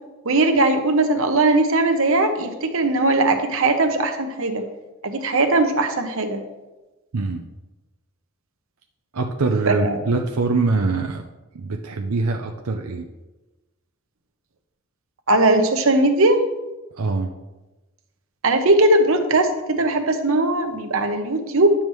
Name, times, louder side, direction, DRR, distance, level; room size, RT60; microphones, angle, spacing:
voice 1, 0.2-4.6 5.0-6.4 9.7-10.0 15.3-16.4 18.4-21.7, right 2 dB, 65° right, 6 dB, 0.9 m, -19 dB
voice 2, 9.1-11.2 11.5-13.1 17.0-17.3, right 3 dB, 90° right, 3 dB, 0.6 m, -23 dB
10.5 x 7.2 x 3.2 m, 1.1 s
head